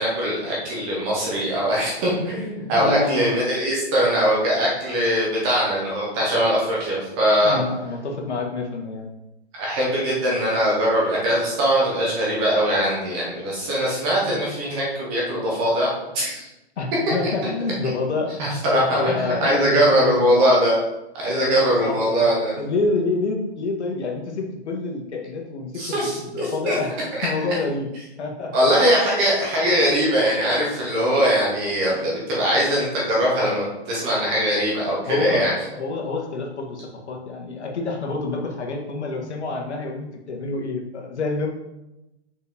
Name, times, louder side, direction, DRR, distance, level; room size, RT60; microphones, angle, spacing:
voice 1, 0.0-7.6 9.5-16.5 18.4-20.8 21.1-22.5 25.7-26.8 28.5-35.5, equal, 10° right, -4 dB, 0.5 m, -21 dB
voice 2, 2.7-3.3 7.4-9.1 14.3-14.4 16.8-18.4 18.7-20.4 21.3-22.3 22.6-26.9 27.2-27.9 28.2-28.5 35.1-41.5, left 3 dB, 85° left, 1 dB, 1.6 m, -27 dB
5.8 x 4.8 x 3.5 m, 0.94 s
hypercardioid pair, 165°, 33 cm